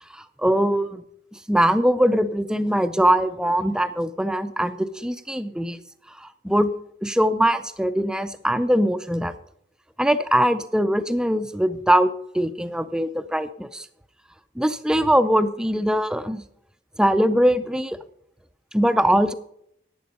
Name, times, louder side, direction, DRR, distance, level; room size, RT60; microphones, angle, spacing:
voice 1, 0.1-1.0 1.5-5.8 6.1-6.7 7.0-9.3 10.0-13.9 14.6-16.4 17.0-18.0 18.7-19.3, equal, 5° right, 12 dB, 0.4 m, -22 dB
11.5 x 8.5 x 5.3 m, 0.73 s
head